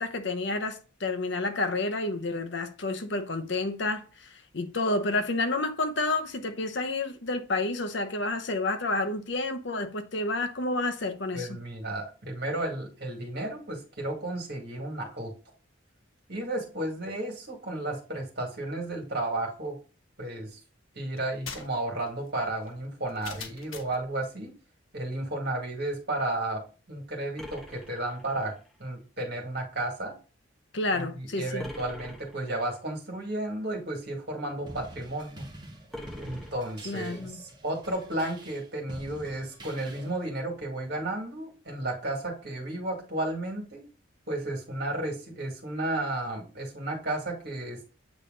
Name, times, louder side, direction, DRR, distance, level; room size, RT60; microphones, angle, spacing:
voice 1, 0.0-11.6 30.7-31.7 36.8-37.4, left 2 dB, 60° left, 0.8 m, -30 dB
voice 2, 11.3-15.3 16.3-19.8 20.2-20.6 21.0-24.5 24.9-26.6 26.9-28.5 28.8-30.2 30.9-35.5 36.2-43.8 44.3-47.9, right 1 dB, 55° right, 2.0 m, -33 dB
sound 1, 21.2-24.1, left 5 dB, 90° left, 1.1 m, -44 dB
sound 2, 27.4-28.8 31.6-32.7 35.9-37.2, left 1 dB, ahead, 1.0 m, -44 dB
sound 3, 34.7-40.3, right 1 dB, 20° right, 1.1 m, -47 dB
8.3 x 3.3 x 3.8 m
head